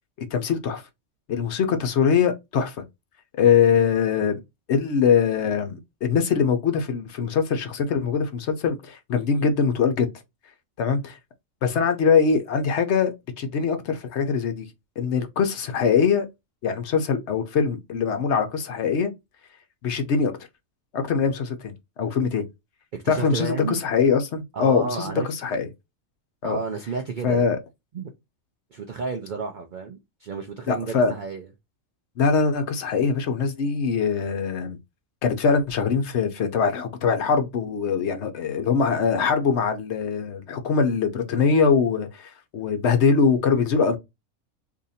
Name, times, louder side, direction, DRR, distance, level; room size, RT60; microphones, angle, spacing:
voice 1, 0.3-0.8 1.3-2.7 3.4-4.4 4.7-10.1 10.8-11.2 11.6-14.7 15.0-16.3 16.6-19.1 19.8-20.3 20.9-21.7 22.0-22.4 23.1-25.7 26.4-26.6 27.2-27.6 30.7-31.1 32.2-34.8 35.2-44.0, left 6 dB, 65° left, 0.9 m, -22 dB
voice 2, 22.9-23.8 24.5-25.3 26.4-27.5 27.9-28.1 28.7-31.5, right 5 dB, 65° right, 0.5 m, -31 dB
2.8 x 2.5 x 4.0 m
omnidirectional pair, 1.4 m